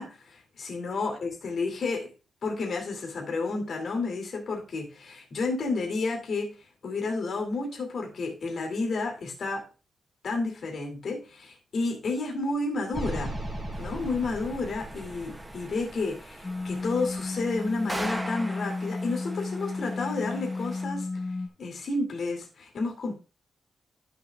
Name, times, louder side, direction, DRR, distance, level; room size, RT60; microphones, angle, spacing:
voice 1, 0.0-2.1 2.4-9.6 10.2-13.4 13.8-23.1, left 3 dB, 55° left, 2 dB, 2.4 m, -31 dB
sound 1, 12.9-17.2, right 1 dB, 30° right, 2.4 m, -38 dB
sound 2, 13.7-20.8, right 1 dB, 10° right, 0.6 m, -41 dB
sound 3, 16.4-21.5, left 3 dB, 25° left, 1.0 m, -33 dB
13.0 x 6.7 x 2.3 m, 0.30 s
wide cardioid pair, 160°, 0 cm